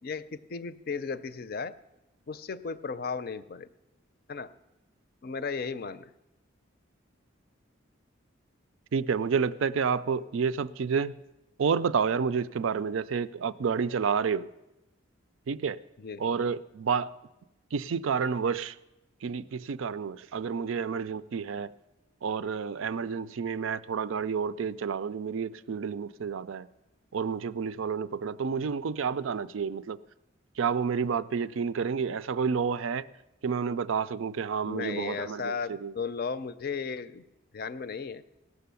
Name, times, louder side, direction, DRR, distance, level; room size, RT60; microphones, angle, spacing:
voice 1, 0.0-1.7 2.3-3.7 4.3-4.5 5.2-6.1 16.0-16.2 34.6-37.2 37.5-38.2, left 5 dB, 50° left, 0.5 m, -35 dB
voice 2, 8.9-11.2 11.6-14.5 15.5-15.8 16.2-17.1 17.7-18.8 19.2-21.7 22.2-26.7 27.1-30.0 30.6-33.1 33.4-35.9, right 6 dB, 80° right, 0.4 m, -30 dB
17.0 x 6.8 x 6.9 m
head